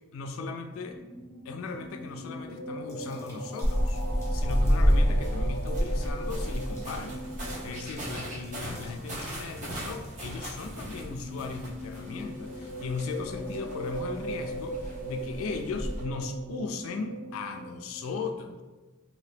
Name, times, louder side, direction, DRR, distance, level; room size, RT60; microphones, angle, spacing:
voice 1, 0.1-1.0 1.5-4.0 4.3-18.6, left 4 dB, 80° left, 6 dB, 0.3 m, -37 dB
sound 1, 0.7-18.0, right 1 dB, 10° right, 1.4 m, -41 dB
sound 2, 1.6-2.2 2.8-10.9, equal, 15° left, 0.9 m, -49 dB
sound 3, 3.6-16.0, equal, 40° right, 0.9 m, -31 dB
2.8 x 2.7 x 3.4 m, 1.2 s
head